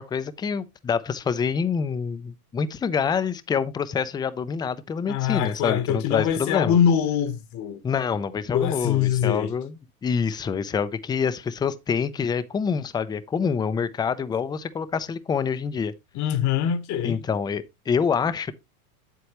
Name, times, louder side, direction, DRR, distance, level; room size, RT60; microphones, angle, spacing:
voice 1, 0.0-6.7 7.8-9.7 10.0-15.9 17.0-18.5, left 6 dB, 10° left, 0.5 m, -26 dB
voice 2, 5.1-7.8 8.5-9.5 16.1-17.2, left 9 dB, 40° left, 1.1 m, -23 dB
8.3 x 8.1 x 3.0 m
hypercardioid pair, 120°, 44 cm